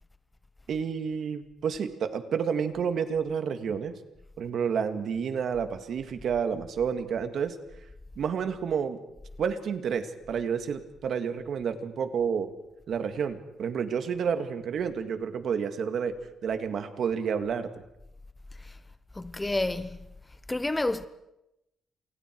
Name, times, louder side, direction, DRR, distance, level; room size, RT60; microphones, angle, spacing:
voice 1, 0.7-3.9 4.4-7.6 8.2-9.0 9.4-12.5 12.9-16.2 16.4-17.7, right 7 dB, 55° right, 2.1 m, -30 dB
voice 2, 19.1-20.0 20.5-21.1, left 2 dB, 10° left, 0.8 m, -29 dB
29.5 x 28.0 x 4.7 m
cardioid pair, 145°, 0 cm